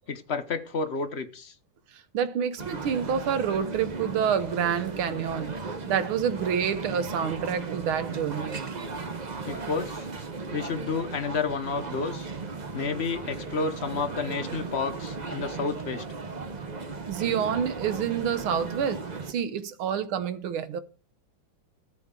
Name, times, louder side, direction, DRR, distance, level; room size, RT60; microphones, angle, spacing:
voice 1, 0.1-1.5 9.5-10.1 10.5-12.3 12.7-16.0, left 5 dB, 45° left, 0.9 m, -30 dB
voice 2, 1.9-8.7 17.1-19.0 19.3-20.8, right 8 dB, 90° right, 1.8 m, -28 dB
sound 1, 2.6-19.3, right 4 dB, 35° right, 0.7 m, -36 dB
14.0 x 7.8 x 3.7 m
omnidirectional pair, 2.2 m